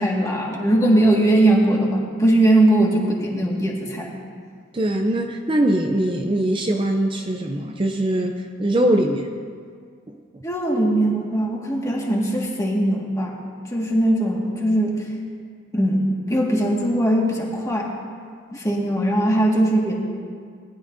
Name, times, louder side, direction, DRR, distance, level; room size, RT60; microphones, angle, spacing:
voice 1, 0.0-4.1 10.4-13.3 13.7-15.1 15.7-17.9 18.5-19.9, right 1 dB, 15° left, -2 dB, 1.8 m, -20 dB
voice 2, 4.7-9.3, right 1 dB, 30° right, 3 dB, 0.6 m, -22 dB
19.5 x 11.5 x 2.7 m, 2.1 s
head